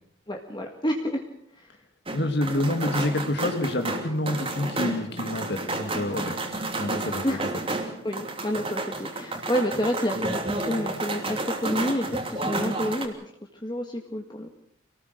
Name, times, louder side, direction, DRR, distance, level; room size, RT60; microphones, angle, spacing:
voice 1, 0.3-1.3 1.5-1.7 7.2-7.4 8.0-13.3 13.6-14.5, equal, 20° left, 2 dB, 1.9 m, -29 dB
voice 2, 2.1-6.3 6.8-7.3, left 1 dB, 55° left, 6 dB, 2.0 m, -27 dB
sound 1, 2.1-13.1, right 2 dB, 25° right, 2.9 m, -31 dB
Bass guitar, 3.4-7.8, left 3 dB, 70° left, 2.7 m, -45 dB
26.0 x 19.0 x 6.6 m, 0.67 s
head